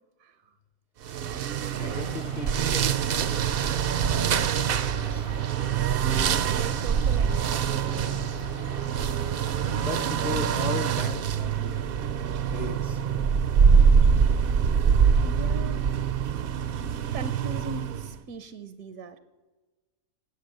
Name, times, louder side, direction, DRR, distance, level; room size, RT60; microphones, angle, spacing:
sound 1, 1.0-18.2, right 7 dB, 60° right, 0.6 m, -24 dB
voice 1, 1.1-3.3 4.1-5.2 9.8-11.9 12.5-13.0, left 4 dB, 40° left, 8 dB, 0.8 m, -37 dB
sound 2, 1.8-10.3, left 1 dB, 70° left, 2.9 m, -44 dB
voice 2, 4.0-4.5 6.1-8.2 14.7-14.8 15.2-15.9 17.1-19.2, right 3 dB, 80° right, 11 dB, 1.2 m, -40 dB
20.0 x 8.1 x 6.6 m, 1.3 s
omnidirectional pair, 1.5 m